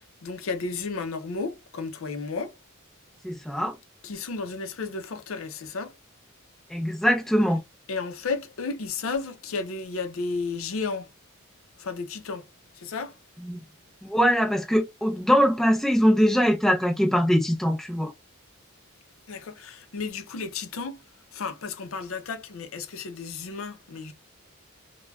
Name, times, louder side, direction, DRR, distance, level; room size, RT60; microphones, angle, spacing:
voice 1, 0.0-2.5 4.0-6.0 7.9-11.1 11.8-12.5 12.7-13.2 19.3-21.0 21.3-24.1, left 4 dB, 70° left, 0.5 m, -33 dB
voice 2, 3.2-3.7 6.7-7.6 13.4-13.6 14.0-18.1, equal, ahead, 0.5 m, -22 dB
3.2 x 2.2 x 2.3 m
head